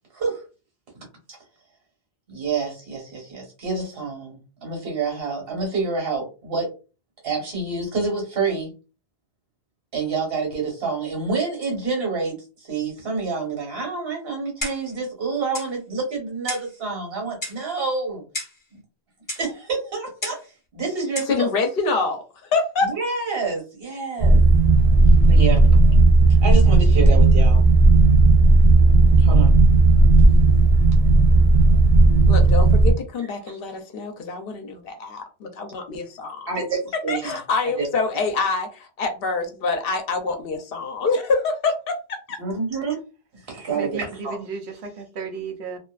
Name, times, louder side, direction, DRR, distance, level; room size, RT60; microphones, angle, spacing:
voice 1, 0.1-0.4 2.3-6.7 7.2-8.7 9.9-18.2 18.7-18.8 19.4-20.4 20.7-21.5 22.8-24.4 25.3-25.8 26.4-27.6 29.2-29.5 36.5-37.4 37.8-37.9 42.4-43.0 43.3-44.4, right 4 dB, 65° right, 1.3 m, -28 dB
Clock, 14.6-15.0 15.5-15.7 16.5-16.7 17.4-17.7 18.3-18.6 19.3-19.5 20.2-20.5 21.1-21.4, left 1 dB, 20° left, 0.6 m, -32 dB
voice 2, 21.3-22.9 32.3-36.5 37.1-42.4, left 4 dB, 65° left, 0.8 m, -26 dB
sound 1, 24.2-32.9, right 2 dB, 40° right, 0.7 m, -14 dB
voice 3, 43.7-45.8, right 5 dB, 85° right, 0.9 m, -34 dB
2.5 x 2.3 x 2.3 m
omnidirectional pair, 1.1 m